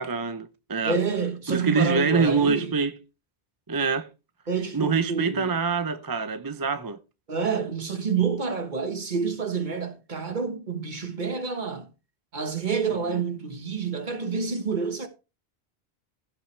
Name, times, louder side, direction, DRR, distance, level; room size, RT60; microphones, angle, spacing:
voice 1, 0.0-1.0 1.5-3.0 3.7-4.1 4.7-7.0 12.9-13.2, right 4 dB, 25° right, 0.5 m, -25 dB
voice 2, 0.8-2.7 4.5-5.5 7.3-11.9 12.3-15.1, right 5 dB, 45° right, 1.4 m, -28 dB
16.0 x 5.7 x 3.3 m
omnidirectional pair, 1.1 m